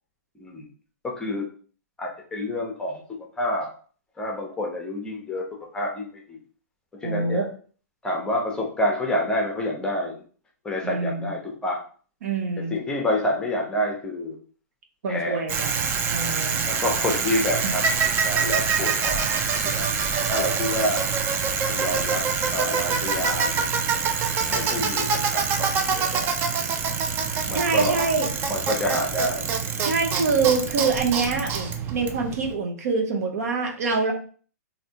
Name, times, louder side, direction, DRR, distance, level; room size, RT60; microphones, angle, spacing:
voice 1, 0.4-0.7 1.0-1.5 2.0-3.0 3.4-3.7 4.2-5.5 5.7-6.4 7.0-7.4 8.0-10.2 10.6-11.8 12.7-14.4 15.1-15.5 16.6-19.2 19.6-19.9 20.3-21.0 21.6-22.2 22.5-23.8 24.4-26.4 27.5-28.0 28.5-29.5, left 1 dB, 10° left, 0 dB, 0.7 m, -28 dB
voice 2, 7.0-7.5 10.8-11.3 12.2-12.7 15.0-16.6 17.6-17.7 27.5-28.3 29.8-34.1, right 4 dB, 60° right, 2 dB, 0.8 m, -25 dB
Bicycle, 15.5-32.5, right 6 dB, 20° right, 0.4 m, -25 dB
3.2 x 2.7 x 2.8 m, 0.42 s
hypercardioid pair, 135°, 9 cm